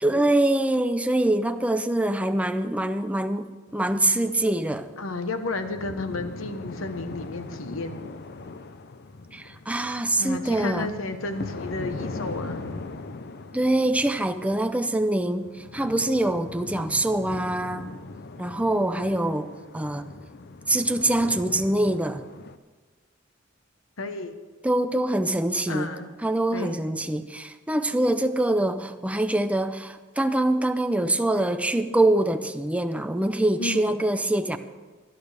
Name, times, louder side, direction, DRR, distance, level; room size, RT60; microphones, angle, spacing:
voice 1, 0.0-3.5 3.7-4.9 9.3-10.9 13.5-15.5 15.7-17.9 18.4-19.5 19.7-20.1 20.7-22.2 24.6-25.9 26.2-34.6, right 1 dB, 5° right, 9 dB, 0.6 m, -24 dB
sound 1, 3.7-22.6, left 3 dB, 55° left, 0.7 m, -40 dB
voice 2, 5.0-8.0 10.2-12.7 16.1-16.2 18.9-19.3 24.0-24.3 25.7-26.1 26.5-26.8 33.6-34.1, left 2 dB, 80° left, 8 dB, 1.1 m, -33 dB
20.0 x 11.5 x 3.4 m, 1.3 s
head